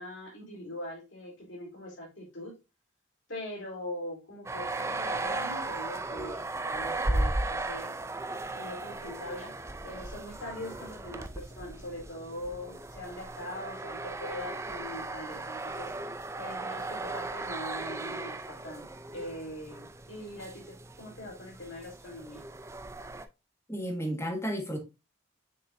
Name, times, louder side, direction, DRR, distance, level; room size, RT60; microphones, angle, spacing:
voice 1, 0.0-2.6 3.3-7.9 8.5-15.9 16.4-22.4, left 1 dB, 60° left, 3.6 m, -42 dB
sound 1, 4.5-23.3, right 2 dB, 15° right, 0.4 m, -36 dB
voice 2, 23.7-24.8, equal, 15° left, 1.6 m, -32 dB
6.8 x 6.3 x 2.6 m
head